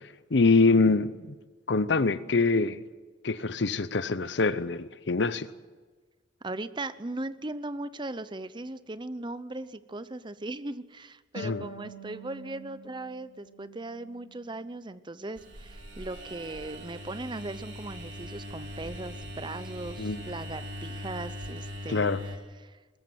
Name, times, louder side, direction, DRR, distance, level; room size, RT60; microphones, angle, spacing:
voice 1, 0.0-1.3 1.7-2.8 3.2-5.5 11.4-11.6 20.0-20.2 21.9-22.2, left 3 dB, 65° left, 0.8 m, -25 dB
voice 2, 6.4-22.1 22.6-22.8, right 2 dB, 25° right, 0.7 m, -38 dB
Harp, 11.3-14.7 15.1-16.2, right 1 dB, 85° left, 1.8 m, -47 dB
sound 1, 15.4-22.4, equal, 85° right, 3.8 m, -40 dB
21.5 x 14.0 x 9.3 m
head